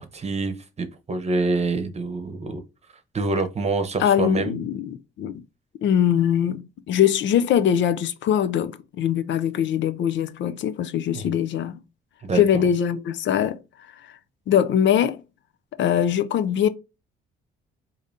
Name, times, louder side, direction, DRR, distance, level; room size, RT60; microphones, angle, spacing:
voice 1, 0.0-2.6 3.1-4.5 11.1-11.4 12.2-12.4, right 3 dB, 35° right, 0.9 m, -26 dB
voice 2, 4.0-5.4 5.8-11.8 12.3-13.6 14.5-15.2 15.8-16.7, left 9 dB, 70° left, 0.5 m, -22 dB
4.8 x 2.7 x 2.7 m
cardioid pair, 90°, 20 cm